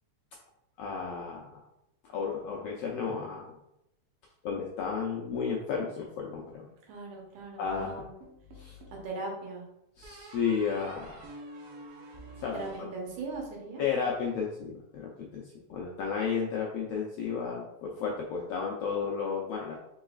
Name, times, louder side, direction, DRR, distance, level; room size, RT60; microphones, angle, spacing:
voice 1, 0.8-1.6 2.1-3.6 4.4-6.7 7.6-8.1 8.5-8.8 10.0-11.2 12.4-12.6 13.8-19.8, left 6 dB, 85° left, -2 dB, 1.4 m, -33 dB
voice 2, 6.9-8.1 9.0-9.7 12.5-13.8, right 3 dB, 90° right, -1 dB, 2.6 m, -39 dB
sound 1, 8.2-9.1 10.0-13.5, right 1 dB, 70° right, 1.9 m, -48 dB
5.3 x 3.9 x 2.4 m, 0.84 s
omnidirectional pair, 3.4 m